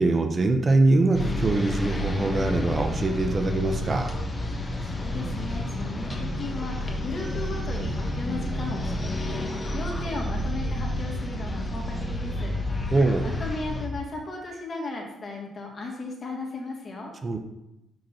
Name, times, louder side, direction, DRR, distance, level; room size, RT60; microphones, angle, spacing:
voice 1, 0.0-4.2 12.9-13.3 17.2-17.4, right 2 dB, 35° right, 5 dB, 0.7 m, -23 dB
sound 1, 1.1-13.9, left 1 dB, 25° left, 1.1 m, -30 dB
voice 2, 4.5-12.5 13.2-17.1, left 3 dB, 40° left, 0 dB, 1.7 m, -36 dB
5.9 x 5.2 x 4.3 m, 0.92 s
cardioid pair, 90°, 0 cm